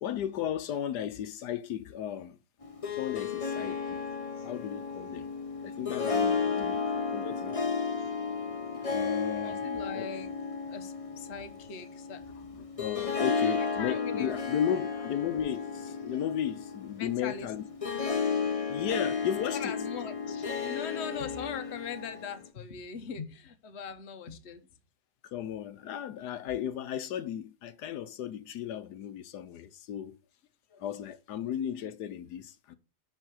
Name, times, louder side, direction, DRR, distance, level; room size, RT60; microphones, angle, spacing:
voice 1, 0.0-2.4 2.9-4.0 4.4-5.3 5.6-7.5 8.8-9.7 9.9-10.1 12.8-17.6 18.1-18.3 18.7-19.7 25.2-30.2 30.8-32.8, left 10 dB, 80° left, 1.3 m, -35 dB
Harp, 2.6-22.4, left 5 dB, 25° left, 0.9 m, -33 dB
voice 2, 9.4-10.3 10.7-12.3 13.1-14.4 14.7-15.1 17.0-17.5 19.5-24.7 30.7-30.8, left 6 dB, 45° left, 1.2 m, -41 dB
10.5 x 4.5 x 6.4 m
omnidirectional pair, 1.7 m